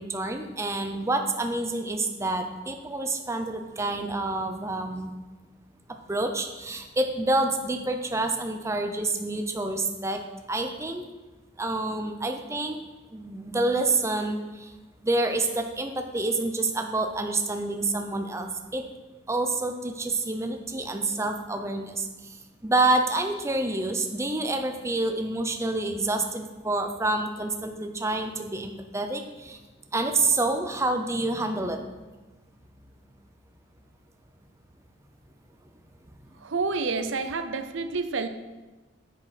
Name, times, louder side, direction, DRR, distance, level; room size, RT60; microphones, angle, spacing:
voice 1, 0.0-5.1 6.1-10.2 10.5-11.0 11.6-12.8 13.1-14.7 15.0-18.8 19.3-22.4 22.6-29.6 29.9-31.8, right 2 dB, 15° right, 5 dB, 0.6 m, -28 dB
voice 2, 36.4-38.3, right 4 dB, 75° right, 9 dB, 0.6 m, -29 dB
9.9 x 6.1 x 5.0 m, 1.2 s
head